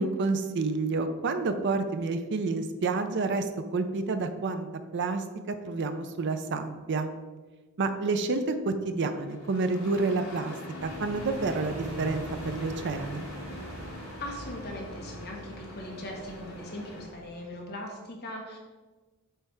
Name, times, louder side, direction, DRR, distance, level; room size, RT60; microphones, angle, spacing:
voice 1, 0.0-4.7 4.9-7.1 7.8-10.5 10.8-13.3, right 3 dB, 55° right, 8 dB, 0.5 m, -29 dB
Engine starting, 9.0-17.1, left 1 dB, 80° left, 1.4 m, -44 dB
sound 1, 10.8-17.5, equal, 75° right, 1.4 m, -43 dB
voice 2, 14.2-18.6, left 1 dB, 50° left, 0 dB, 1.3 m, -39 dB
7.9 x 3.3 x 4.7 m, 1.3 s
head